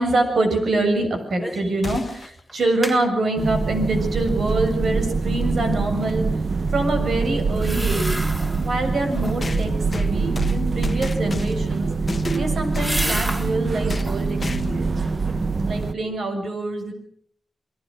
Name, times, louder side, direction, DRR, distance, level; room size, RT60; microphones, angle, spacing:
voice 1, 0.0-6.3 6.7-8.2 8.6-11.9 12.3-15.0 15.6-16.9, right 2 dB, 80° right, 5 dB, 7.2 m, -25 dB
sound 1, 1.4-1.7 2.1-2.2 2.5-3.0 7.5-8.7 9.1-9.6 11.6-13.5 13.9-14.4 14.8-15.5 15.8-15.9, equal, 15° right, 7.3 m, -31 dB
sound 2, 1.8-2.4 4.5-4.6 5.7-5.8 9.4-11.7 12.1-13.0 13.9-14.1 14.4-14.9, left 3 dB, 45° left, 1.1 m, -32 dB
sound 3, 3.4-15.9, right 4 dB, 50° right, 1.0 m, -24 dB
28.5 x 21.0 x 6.5 m, 0.63 s
cardioid pair, 75°, 0 cm